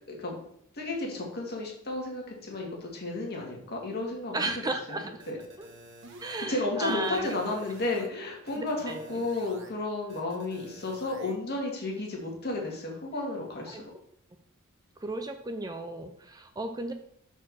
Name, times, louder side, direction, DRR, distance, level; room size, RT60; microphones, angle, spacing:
voice 1, 0.1-0.4 0.7-4.5 4.9-5.0 5.3-5.4 6.5-13.8, left 2 dB, 45° left, 0 dB, 1.9 m, -33 dB
voice 2, 4.3-5.2 5.6-5.7 6.2-7.3 8.6-9.2 13.7-13.8 15.0-16.9, right 2 dB, 15° right, 7 dB, 0.5 m, -34 dB
sound 1, 5.2-6.4 6.8-8.1 8.5-9.7 10.1-11.3, right 1 dB, 60° right, 1.2 m, -50 dB
6.0 x 4.5 x 6.2 m, 0.69 s
head